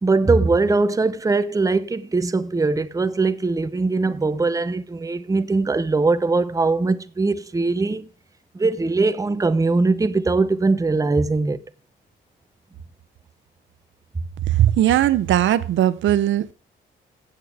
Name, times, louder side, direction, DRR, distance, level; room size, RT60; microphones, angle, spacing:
voice 1, 0.0-8.1 8.5-11.6, right 3 dB, 15° right, 0.8 m, -21 dB
voice 2, 14.5-16.5, right 12 dB, 70° right, 0.8 m, -18 dB
15.5 x 8.0 x 3.4 m
cardioid pair, 90°, 20 cm